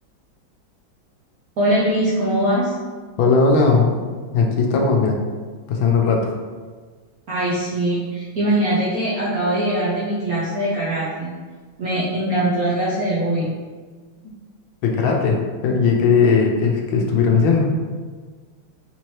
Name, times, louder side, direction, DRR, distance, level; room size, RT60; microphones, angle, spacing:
voice 1, 1.6-2.7 7.3-11.3 11.8-13.6, right 1 dB, 70° right, -7 dB, 0.8 m, -21 dB
voice 2, 3.2-4.0 4.3-5.2 5.7-6.3 14.8-17.7, left 4 dB, 75° left, 1 dB, 1.3 m, -18 dB
4.3 x 3.1 x 2.8 m, 1.5 s
omnidirectional pair, 2.3 m